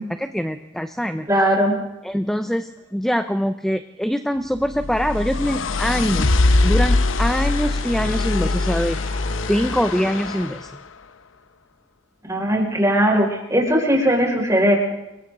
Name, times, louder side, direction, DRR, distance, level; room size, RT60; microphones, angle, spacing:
voice 1, 0.0-1.3 2.0-9.0 9.5-10.7, equal, ahead, 8 dB, 0.7 m, -24 dB
voice 2, 1.3-1.8 12.3-14.8, equal, 15° right, -1 dB, 6.0 m, -18 dB
sound 1, 4.6-10.7, left 2 dB, 90° left, 0.9 m, -22 dB
sound 2, 5.4-10.5, left 2 dB, 35° left, 4.0 m, -38 dB
30.0 x 23.0 x 4.0 m, 0.96 s
head